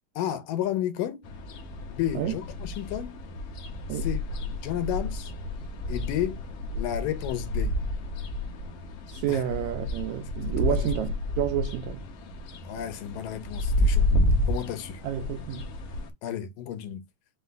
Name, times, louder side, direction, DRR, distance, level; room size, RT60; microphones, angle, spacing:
voice 1, 0.2-1.2 1.9-3.2 3.9-4.2 4.6-5.3 5.9-6.4 6.8-7.8 9.3-9.4 10.4-10.9 12.6-14.1 14.5-15.0 16.2-17.0, left 11 dB, 90° left, 2.4 m, -32 dB
sound 1, 1.2-16.1, left 1 dB, 70° left, 1.5 m, -30 dB
voice 2, 9.1-12.0 15.0-15.7, right 11 dB, 85° right, 1.6 m, -30 dB
5.6 x 2.2 x 3.3 m
omnidirectional pair, 3.8 m